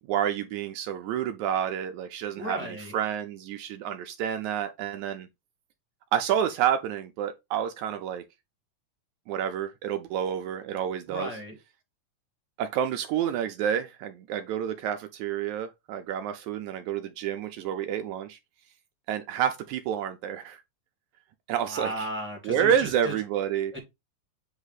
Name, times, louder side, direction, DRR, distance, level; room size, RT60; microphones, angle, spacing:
voice 1, 0.1-5.3 6.1-8.2 9.3-11.3 12.6-18.4 19.1-20.6 21.5-22.1 22.4-23.7, right 9 dB, 80° right, 1.8 m, -29 dB
voice 2, 2.3-2.9 11.1-11.6 21.7-23.1 23.7-23.8, equal, 5° right, 1.0 m, -35 dB
8.1 x 3.0 x 4.0 m
omnidirectional pair, 3.7 m